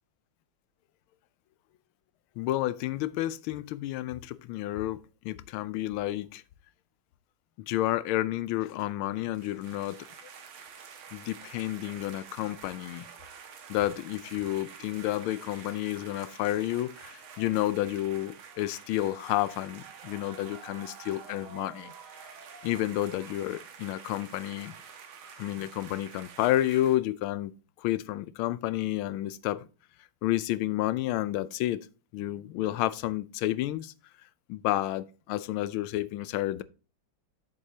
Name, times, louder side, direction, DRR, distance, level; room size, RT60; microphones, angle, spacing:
voice 1, 2.4-6.4 7.7-10.1 11.1-13.1 13.7-21.9 22.6-24.7 25.4-27.5 27.8-29.7 30.2-31.9 32.1-33.9 34.5-36.6, left 14 dB, 85° left, 1.4 m, -30 dB
sound 1, 9.1-27.0, right 6 dB, 85° right, 2.0 m, -48 dB
7.9 x 7.6 x 2.7 m
omnidirectional pair, 2.2 m